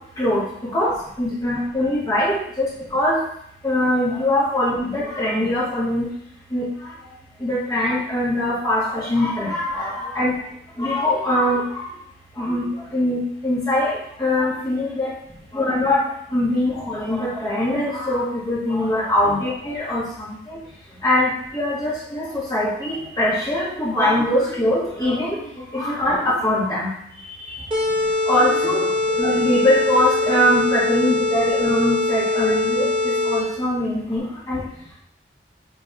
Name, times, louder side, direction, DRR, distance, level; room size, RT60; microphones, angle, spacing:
voice 1, 0.2-3.2 3.6-6.1 6.5-6.7 7.4-10.4 10.8-11.9 12.4-15.1 15.5-20.6 21.0-26.9 27.4-27.6 28.3-34.6, left 1 dB, 20° left, -7 dB, 2.1 m, -22 dB
sound 1, 27.7-33.6, left 2 dB, 30° right, 1.4 m, -22 dB
5.9 x 4.1 x 4.7 m, 0.73 s
head